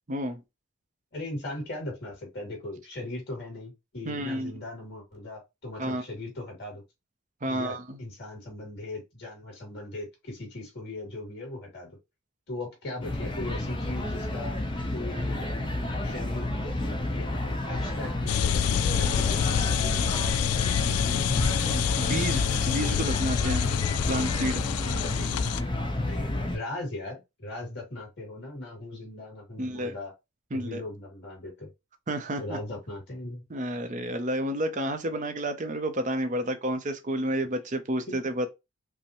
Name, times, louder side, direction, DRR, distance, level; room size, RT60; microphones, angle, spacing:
voice 1, 0.1-0.4 4.0-4.5 5.8-6.0 7.4-8.0 22.0-23.7 24.1-24.6 29.6-29.9 30.5-30.8 32.1-32.6 33.5-38.5, right 1 dB, 35° right, 0.5 m, -30 dB
voice 2, 1.1-6.8 7.4-11.9 12.5-14.6 14.9-15.4 16.0-19.7 24.8-25.3 26.0-30.1 30.5-31.7 32.4-33.4 38.1-38.2, left 2 dB, 50° left, 2.6 m, -39 dB
sound 1, 13.0-26.6, left 1 dB, 20° left, 0.6 m, -30 dB
sound 2, 18.3-25.6, left 9 dB, 85° left, 0.3 m, -27 dB
5.4 x 2.1 x 2.9 m
head